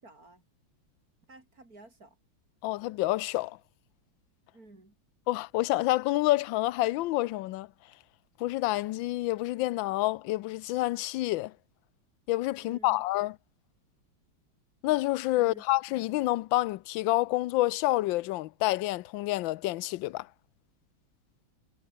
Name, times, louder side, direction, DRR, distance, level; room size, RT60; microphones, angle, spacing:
voice 1, 0.0-0.4 1.3-2.2 4.5-4.9 12.6-13.0 15.3-15.6, right 2 dB, 45° right, 5.9 m, -53 dB
voice 2, 2.6-3.6 5.3-7.7 8.4-11.5 12.3-13.3 14.8-20.3, left 17 dB, 75° left, 1.3 m, -28 dB
omnidirectional pair, 2.2 m